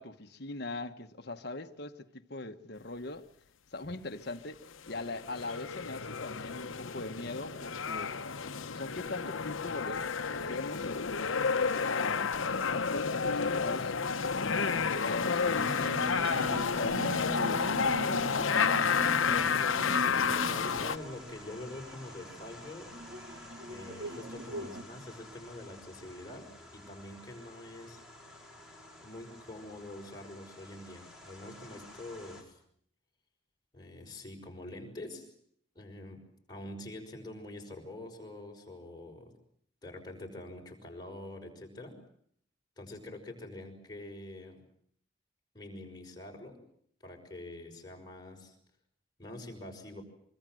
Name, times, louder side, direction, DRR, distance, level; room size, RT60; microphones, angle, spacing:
voice 1, 0.0-3.3 3.7-8.1 8.4-11.5 11.9-13.9 14.4-16.0 16.5-18.7, left 2 dB, 50° left, 1.4 m, -41 dB
sound 1, 4.9-21.0, left 5 dB, 80° left, 1.0 m, -30 dB
sound 2, 15.3-32.4, left 1 dB, 5° right, 5.0 m, -52 dB
sound 3, 15.5-24.8, equal, 50° right, 1.5 m, -41 dB
voice 2, 19.2-22.9 23.7-26.5 26.7-28.0 29.0-32.6 33.7-35.3 35.7-36.2 36.5-39.3 39.8-41.9 42.8-44.6 45.5-46.6 47.0-48.5 49.2-50.0, left 1 dB, 20° left, 5.8 m, -45 dB
24.5 x 24.0 x 7.8 m
head